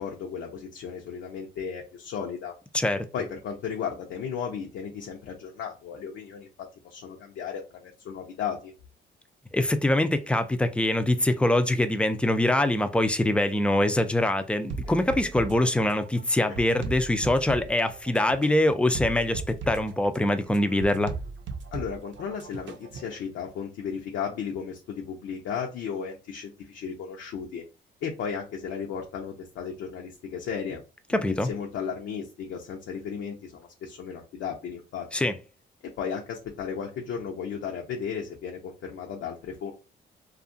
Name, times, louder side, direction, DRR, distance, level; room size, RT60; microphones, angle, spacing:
voice 1, 0.0-2.5 3.1-6.5 6.8-8.7 16.8-16.9 21.7-27.6 28.0-30.8 31.1-35.3 36.0-39.7, left 7 dB, 75° left, 0.7 m, -35 dB
voice 2, 2.7-3.1 9.5-21.1 31.1-31.5 35.1-35.4, left 1 dB, 5° left, 0.4 m, -24 dB
sound 1, 14.7-23.2, right 4 dB, 70° right, 0.6 m, -38 dB
2.7 x 2.4 x 2.6 m
cardioid pair, 90°, 20 cm